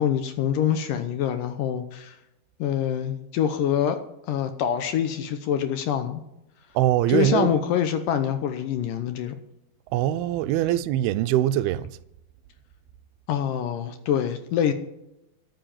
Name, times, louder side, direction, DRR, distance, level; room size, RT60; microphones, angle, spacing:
voice 1, 0.0-2.2 2.6-4.0 4.3-6.2 7.1-9.4 13.3-14.7, left 9 dB, 75° left, 2.2 m, -25 dB
voice 2, 6.8-7.5 9.9-12.0, right 13 dB, 85° right, 2.5 m, -23 dB
13.0 x 7.5 x 8.9 m
omnidirectional pair, 4.5 m